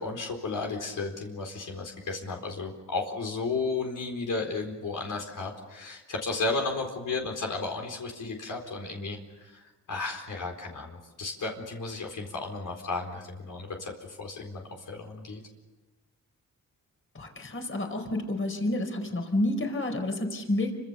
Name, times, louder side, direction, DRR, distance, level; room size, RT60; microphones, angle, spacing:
voice 1, 0.0-15.4, left 3 dB, 70° left, 1 dB, 4.2 m, -34 dB
voice 2, 17.1-20.7, left 1 dB, 40° left, 5 dB, 4.8 m, -29 dB
29.0 x 25.5 x 6.9 m, 1.1 s
wide cardioid pair, 105°, 32 cm